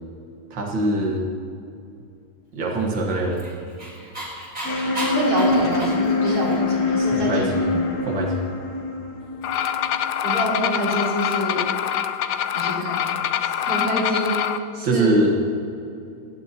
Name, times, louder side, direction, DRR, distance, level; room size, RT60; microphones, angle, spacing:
voice 1, 0.5-1.2 2.5-3.5 7.1-7.6 8.0-8.4 14.8-15.4, right 2 dB, 85° right, 0 dB, 2.3 m, -23 dB
Dog, 2.9-6.7, right 1 dB, 25° right, 3.9 m, -33 dB
sound 1, 4.6-10.6, left 3 dB, 55° left, 1.7 m, -25 dB
voice 2, 5.1-7.8 10.2-11.6 12.5-13.2 13.6-15.2, equal, 55° right, -6 dB, 4.3 m, -26 dB
sound 2, 9.4-14.6, left 9 dB, 70° left, 1.1 m, -25 dB
18.5 x 15.0 x 2.9 m, 2.6 s
omnidirectional pair, 2.0 m